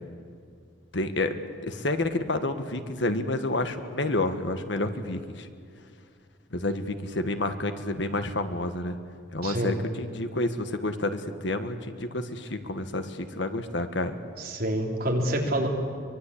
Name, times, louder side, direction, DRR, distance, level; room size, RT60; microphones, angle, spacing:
voice 1, 0.9-5.5 6.5-9.0 9.3-14.2, left 2 dB, 70° left, 8 dB, 1.6 m, -29 dB
voice 2, 9.4-9.8 14.4-15.7, right 1 dB, 50° right, 0 dB, 4.0 m, -27 dB
24.0 x 23.5 x 8.6 m, 2.3 s
head